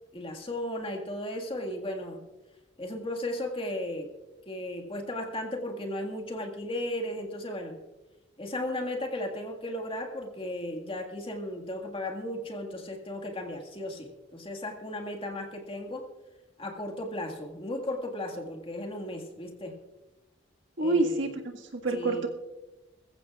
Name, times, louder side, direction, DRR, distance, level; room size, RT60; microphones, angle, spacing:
voice 1, 0.1-2.2 2.8-4.1 4.5-7.8 8.4-16.1 16.6-19.8 20.8-21.4 21.9-22.3, left 1 dB, 30° left, 3 dB, 1.8 m, -35 dB
voice 2, 20.8-22.3, right 2 dB, 70° right, 1 dB, 1.8 m, -27 dB
21.5 x 15.0 x 2.4 m, 1.1 s
head